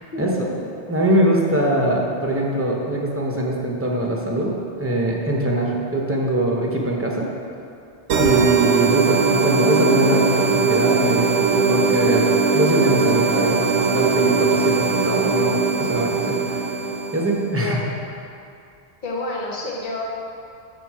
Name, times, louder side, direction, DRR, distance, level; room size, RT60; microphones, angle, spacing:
voice 1, 0.1-0.7 8.1-8.5 17.6-17.9 19.0-20.0, left 2 dB, 50° left, -2 dB, 1.1 m, -30 dB
voice 2, 0.9-4.5 4.8-7.3 8.2-16.7 17.1-17.8, right 1 dB, 15° right, -1 dB, 0.8 m, -22 dB
sound 1, 8.1-17.5, right 4 dB, 90° right, 0.9 m, -20 dB
7.0 x 5.9 x 4.7 m, 2.5 s
omnidirectional pair, 1.1 m